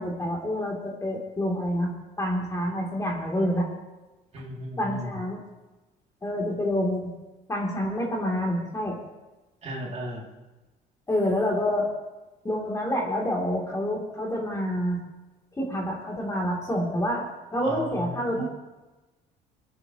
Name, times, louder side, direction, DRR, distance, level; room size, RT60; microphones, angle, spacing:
voice 1, 0.0-3.7 4.8-5.4 6.2-7.1 7.5-9.0 11.1-11.9 12.4-15.0 15.6-17.3 17.5-18.5, equal, 20° left, -1 dB, 3.1 m, -27 dB
voice 2, 4.3-5.1 9.6-10.3 17.6-17.8 18.3-18.5, equal, 40° right, -2 dB, 2.9 m, -36 dB
21.5 x 9.5 x 3.1 m, 1.1 s
cardioid pair, 110°, 17 cm